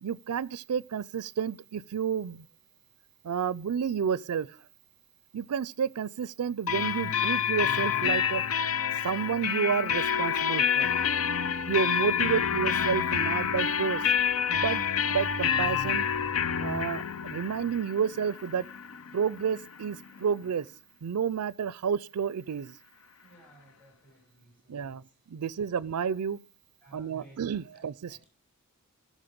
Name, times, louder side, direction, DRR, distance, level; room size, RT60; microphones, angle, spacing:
voice 1, 0.0-2.5 3.2-4.6 5.3-8.4 9.0-10.9 11.7-14.0 14.5-16.1 16.6-18.7 19.1-20.7 21.0-22.7 24.7-26.4 26.9-28.2, right 7 dB, 85° right, 0.4 m, -30 dB
sound 1, 6.7-20.2, left 8 dB, 65° left, 0.6 m, -28 dB
sound 2, 9.8-16.6, equal, 15° right, 3.9 m, -56 dB
voice 2, 23.2-25.0 26.8-27.4 27.7-27.8 28.1-28.3, right 1 dB, 5° left, 6.1 m, -56 dB
14.5 x 6.3 x 5.1 m
head